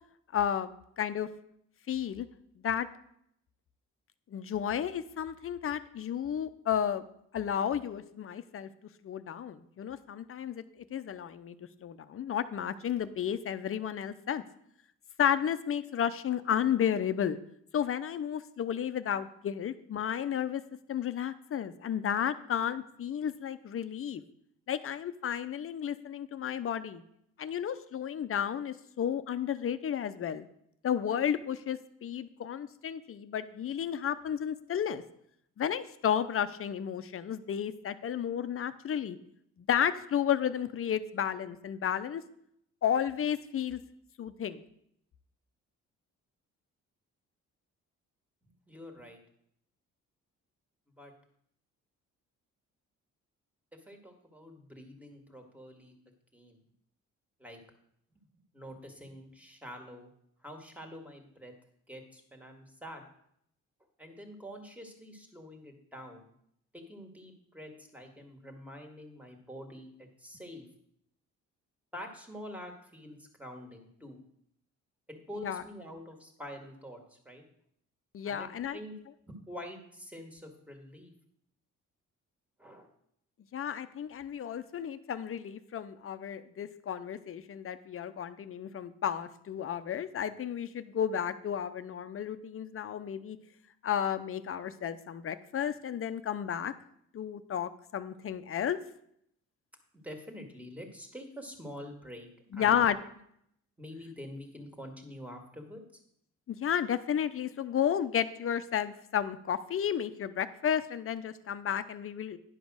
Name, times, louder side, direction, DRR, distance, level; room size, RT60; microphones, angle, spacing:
voice 1, 0.3-1.3 1.9-2.3 2.6-2.9 4.3-7.0 7.3-8.7 9.0-10.6 10.9-11.6 11.8-14.4 15.2-17.4 17.7-20.6 20.9-24.2 24.7-27.0 27.4-30.5 30.8-35.0 35.6-39.2 39.6-42.2 42.8-43.8 44.2-44.6 75.4-75.6 78.1-78.8 83.5-93.4 93.8-96.7 97.1-98.8 102.5-103.0 106.5-112.4, left 9 dB, 45° left, 12 dB, 0.7 m, -32 dB
voice 2, 48.4-49.2 51.0-51.1 53.7-55.9 56.3-56.6 57.4-57.6 58.5-60.1 60.4-61.5 61.9-63.0 64.0-66.2 66.7-70.6 71.9-74.2 75.1-77.4 78.2-78.9 79.3-81.1 82.6-82.9 99.9-102.3 102.5-102.8 103.8-106.0, equal, 5° right, 3 dB, 2.0 m, -46 dB
11.0 x 5.2 x 6.3 m, 0.72 s
cardioid pair, 90°, 30 cm